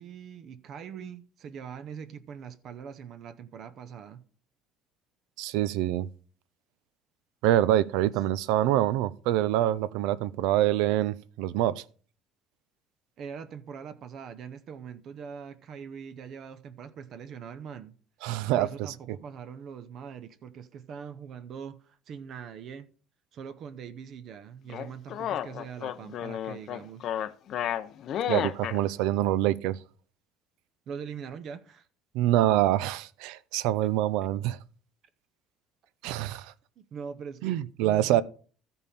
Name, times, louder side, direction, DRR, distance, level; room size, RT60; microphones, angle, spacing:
voice 1, 0.0-4.2 13.2-17.9 18.6-22.9 23.3-27.0 30.9-31.9 36.8-38.2, right 7 dB, 45° right, 0.6 m, -42 dB
voice 2, 5.4-6.1 7.4-11.8 18.2-18.9 28.3-29.8 32.1-34.6 36.0-36.5 37.4-38.2, right 13 dB, 90° right, 0.5 m, -25 dB
sound 1, 24.7-28.8, left 10 dB, 50° left, 0.5 m, -32 dB
13.5 x 5.4 x 4.2 m
cardioid pair, 150°, 0 cm